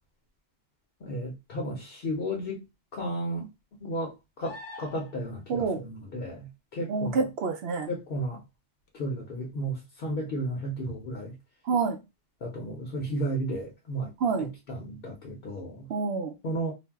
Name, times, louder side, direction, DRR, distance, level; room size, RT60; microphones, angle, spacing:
voice 1, 1.0-2.6 2.9-3.5 3.8-4.1 4.4-7.2 7.9-8.4 8.9-11.3 12.4-14.1 14.4-15.9 16.4-16.7, right 1 dB, 60° left, 0.8 m, -33 dB
sound 1, 4.4-5.4 8.9-9.0, left 2 dB, 90° left, 1.0 m, -44 dB
voice 2, 5.5-5.8 6.9-7.9 11.7-12.0 14.2-14.5 15.9-16.3, right 4 dB, 70° right, 0.8 m, -27 dB
2.5 x 2.0 x 3.4 m
omnidirectional pair, 1.2 m